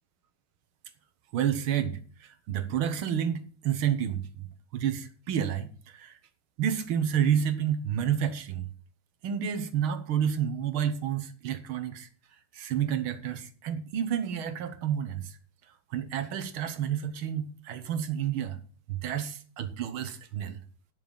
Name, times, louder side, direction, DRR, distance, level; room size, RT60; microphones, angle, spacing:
voice 1, 1.3-4.5 4.7-6.2 6.6-8.7 9.2-12.1 12.5-15.4 15.9-18.6 18.9-20.6, right 9 dB, 90° right, 2.0 m, -30 dB
9.3 x 6.7 x 6.9 m
omnidirectional pair, 2.2 m